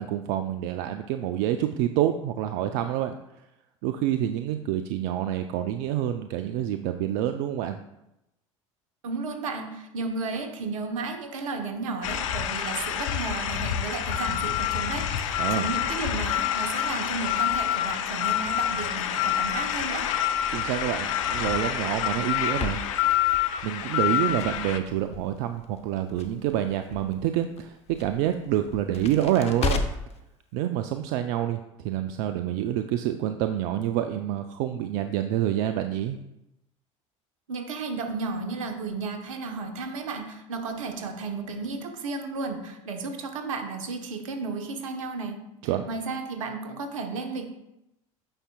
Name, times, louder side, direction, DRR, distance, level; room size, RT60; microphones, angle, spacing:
voice 1, 0.0-3.2 3.8-7.8 15.4-15.7 20.5-23.1 23.6-29.9 30.5-31.6 31.8-36.2 45.6-45.9, right 11 dB, 60° right, 8 dB, 0.4 m, -27 dB
voice 2, 9.0-20.1 37.5-45.4 45.9-47.5, right 4 dB, 80° right, 5 dB, 1.0 m, -33 dB
sound 1, 12.0-24.8, left 10 dB, 75° left, 0.6 m, -27 dB
Crackle, 19.3-30.2, left 5 dB, 40° left, 0.7 m, -37 dB
8.8 x 5.6 x 2.3 m, 0.88 s
hypercardioid pair, 70°, 17 cm